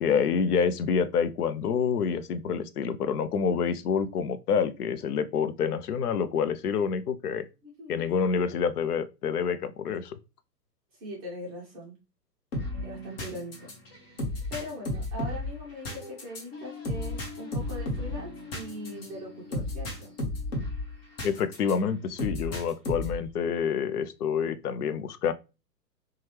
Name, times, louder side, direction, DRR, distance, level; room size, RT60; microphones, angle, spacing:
voice 1, 0.0-7.5 7.9-10.2 21.2-25.3, left 6 dB, 65° left, 0.5 m, -27 dB
voice 2, 7.6-8.1 10.9-12.0 12.8-13.7 14.5-20.1, left 1 dB, 10° right, 0.5 m, -41 dB
sound 1, 12.5-21.7 22.2-23.3, left 1 dB, 35° left, 1.0 m, -34 dB
2.8 x 2.3 x 3.1 m
figure-of-eight pair, 120°, 50 cm